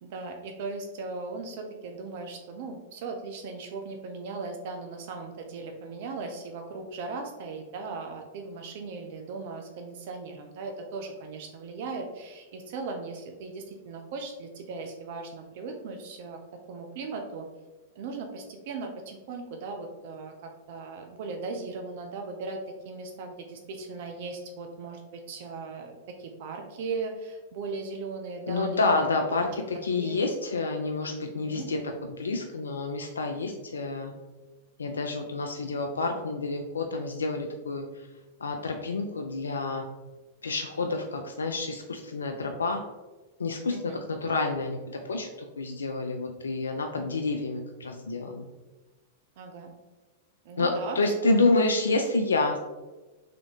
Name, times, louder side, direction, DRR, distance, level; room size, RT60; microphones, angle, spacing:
voice 1, 0.0-16.4 16.7-17.5 18.0-28.8 29.7-30.1 31.4-31.7 40.8-40.9 43.7-43.8 49.4-49.7 50.4-51.5, right 3 dB, 60° right, 4 dB, 0.6 m, -38 dB
voice 2, 28.5-31.8 32.1-34.1 34.8-38.1 38.4-39.9 40.4-42.8 43.4-48.5 50.6-52.6, left 3 dB, 90° left, 3 dB, 0.4 m, -28 dB
3.8 x 3.6 x 3.4 m, 1.2 s
hypercardioid pair, 110°, 0 cm